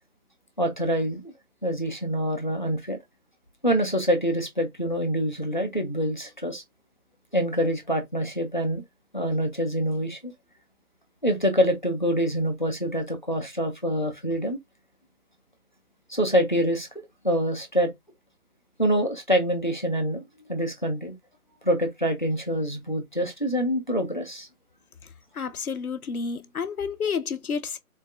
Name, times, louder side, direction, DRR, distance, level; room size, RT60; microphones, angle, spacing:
voice 1, 0.6-1.3 1.6-3.0 3.6-6.6 7.3-8.8 9.1-10.3 11.2-14.6 16.1-16.9 17.2-17.9 18.8-20.2 20.5-21.1 21.6-24.5, equal, 30° left, 0.6 m, -25 dB
voice 2, 25.3-27.8, left 6 dB, 70° left, 0.8 m, -30 dB
4.1 x 2.2 x 3.2 m
figure-of-eight pair, 170°, 45 cm